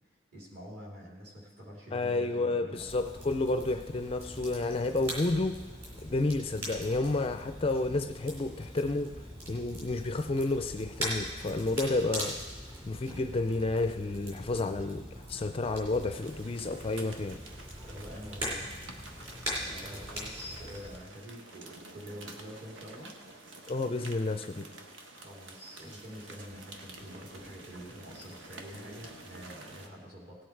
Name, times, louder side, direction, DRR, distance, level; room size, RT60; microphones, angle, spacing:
voice 1, 0.3-2.9 17.8-18.7 19.5-23.1 25.1-30.4, equal, 50° right, -3 dB, 3.1 m, -46 dB
voice 2, 1.9-5.6 6.0-9.2 9.5-12.4 12.9-17.4 23.7-24.7, left 2 dB, 30° left, 8 dB, 0.4 m, -31 dB
Crackle, 2.7-21.0, equal, 30° right, 3.7 m, -41 dB
sound 1, 16.1-29.9, right 2 dB, 70° right, 1.3 m, -49 dB
18.0 x 8.4 x 4.6 m, 1.4 s
head